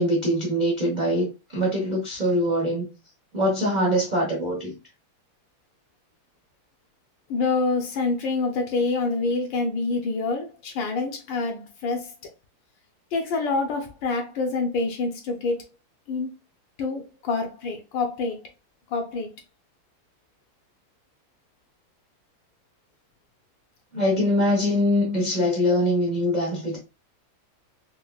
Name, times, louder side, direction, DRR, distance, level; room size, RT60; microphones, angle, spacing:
voice 1, 0.0-2.9 3.3-4.7 23.9-26.8, equal, 55° right, 0.5 m, -23 dB
voice 2, 7.3-12.1 13.1-15.7 16.1-16.3 16.8-18.4 18.9-19.3, left 3 dB, 70° left, 1.2 m, -26 dB
4.4 x 2.1 x 2.2 m
omnidirectional pair, 2.3 m